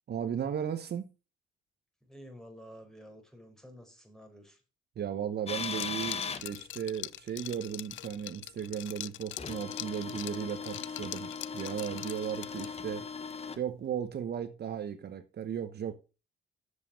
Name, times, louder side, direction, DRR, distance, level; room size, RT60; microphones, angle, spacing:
voice 1, 0.1-1.1 5.0-13.1 13.6-15.9, right 8 dB, 55° right, 1.1 m, -36 dB
voice 2, 2.0-4.6, equal, 5° left, 4.4 m, -51 dB
Liquid, 5.5-12.9, left 15 dB, 70° left, 0.4 m, -43 dB
sound 1, 5.5-6.5 9.4-13.6, left 5 dB, 30° left, 1.3 m, -38 dB
8.3 x 6.9 x 6.4 m
cardioid pair, 90°, 20 cm